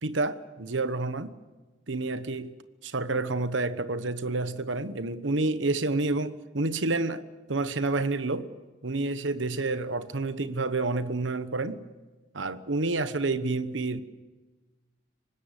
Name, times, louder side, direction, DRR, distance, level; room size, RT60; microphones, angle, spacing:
voice 1, 0.0-1.4 1.9-2.6 2.8-8.5 8.8-11.8 12.3-14.0, right 3 dB, 70° right, 1.2 m, -29 dB
24.5 x 20.0 x 8.3 m
head